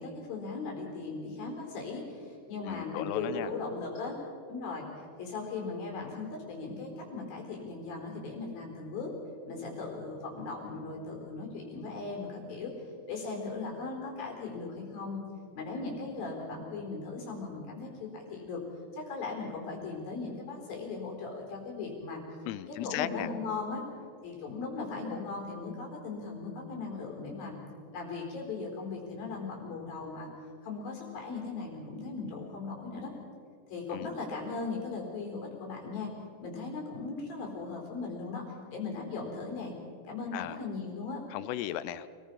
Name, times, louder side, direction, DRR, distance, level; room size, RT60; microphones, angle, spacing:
voice 1, 0.0-4.2 4.5-9.1 9.5-12.7 13.1-15.2 15.6-18.6 18.9-22.2 22.7-23.8 24.2-27.5 27.9-30.3 30.6-33.1 33.7-36.1 36.4-39.7 40.1-41.2, left 4 dB, 60° left, 0 dB, 5.9 m, -38 dB
voice 2, 2.6-3.5 22.5-23.3 33.9-34.1 40.3-40.6 41.3-42.1, left 13 dB, 80° left, 15 dB, 2.7 m, -36 dB
28.0 x 20.5 x 5.7 m, 2.4 s
omnidirectional pair, 4.8 m